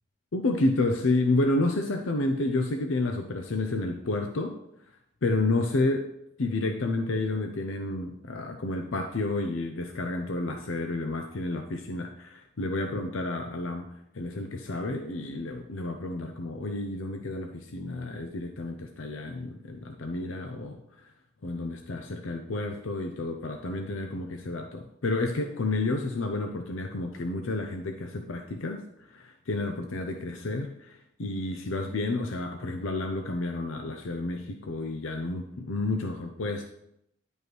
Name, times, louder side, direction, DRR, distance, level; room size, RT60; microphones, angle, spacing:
voice 1, 0.3-4.5 5.2-6.1 6.4-20.8 21.4-28.8 29.1-36.7, left 2 dB, 85° left, 5 dB, 0.7 m, -30 dB
10.5 x 5.4 x 3.1 m, 0.76 s
head